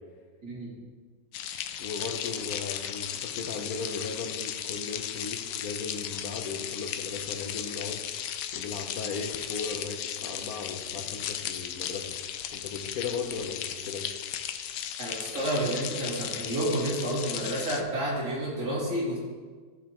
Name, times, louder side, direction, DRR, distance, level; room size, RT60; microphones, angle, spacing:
voice 1, 0.4-0.7 15.0-19.2, right 1 dB, 80° right, -6 dB, 3.2 m, -30 dB
sound 1, 1.3-17.8, left 10 dB, 85° left, 1.2 m, -36 dB
voice 2, 1.8-12.1 12.5-14.1, left 5 dB, 65° left, 4 dB, 1.2 m, -37 dB
14.5 x 6.1 x 3.0 m, 1.5 s
omnidirectional pair, 1.9 m